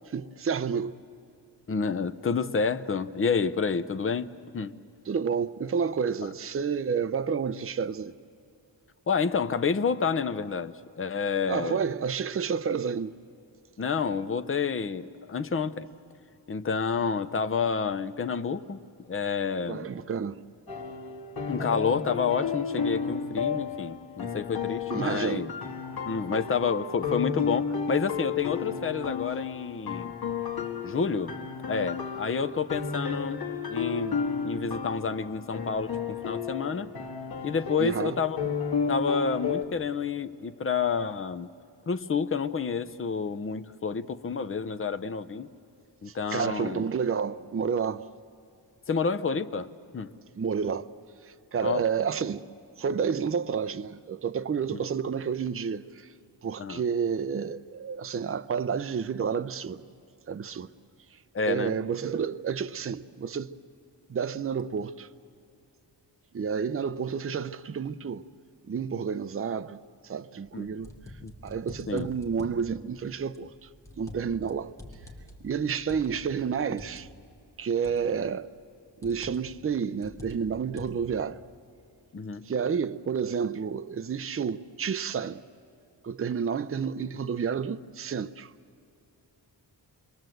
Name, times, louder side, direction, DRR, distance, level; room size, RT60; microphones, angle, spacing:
voice 1, 0.1-1.0 5.1-8.1 11.5-13.1 19.7-20.4 24.9-25.5 32.4-32.5 37.8-38.2 46.3-48.1 50.4-50.9 51.2-52.5 52.8-56.1 56.4-59.8 60.3-60.7 61.5-63.5 64.1-65.1 66.3-68.2 68.7-69.8 70.0-70.9 71.4-73.7 74.0-74.7 75.4-77.1 77.6-78.5 79.0-81.4 82.5-85.4 86.0-88.5, right 6 dB, 30° right, 0.5 m, -30 dB
voice 2, 1.7-4.8 9.1-11.8 13.8-15.9 16.5-18.8 19.1-19.9 21.5-25.5 26.1-30.2 30.8-31.4 31.7-33.4 33.7-36.9 37.4-38.4 38.9-41.5 41.9-45.5 46.0-46.8 48.9-49.7 49.9-50.1 51.6-51.8 54.7-54.8 56.6-56.8 61.3-61.7 70.5-70.8 71.2-71.3 71.9-72.1 82.1-82.4, left 5 dB, 30° left, 0.7 m, -29 dB
sound 1, 20.7-39.6, left 5 dB, 55° left, 1.8 m, -33 dB
sound 2, 70.5-72.7 73.3-74.5 74.8-77.0 77.8-78.2 79.0-79.5 80.0-81.1, left 1 dB, 5° left, 2.8 m, -45 dB
28.0 x 22.5 x 7.8 m
wide cardioid pair, 130°, 44 cm